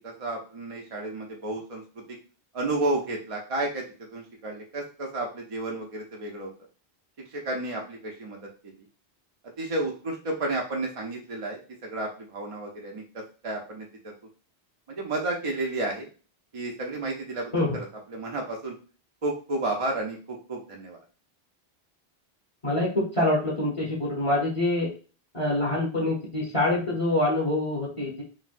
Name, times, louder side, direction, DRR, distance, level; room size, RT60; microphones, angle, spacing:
voice 1, 0.0-2.2 2.5-3.9 4.1-6.5 7.3-8.4 9.6-14.1 14.9-16.1 16.5-17.8 18.1-18.7 19.2-21.0, right 2 dB, 45° right, 0 dB, 0.5 m, -32 dB
voice 2, 22.6-24.9 25.3-28.2, left 1 dB, 35° left, -3 dB, 0.8 m, -25 dB
3.9 x 2.1 x 2.4 m, 0.36 s
omnidirectional pair, 1.1 m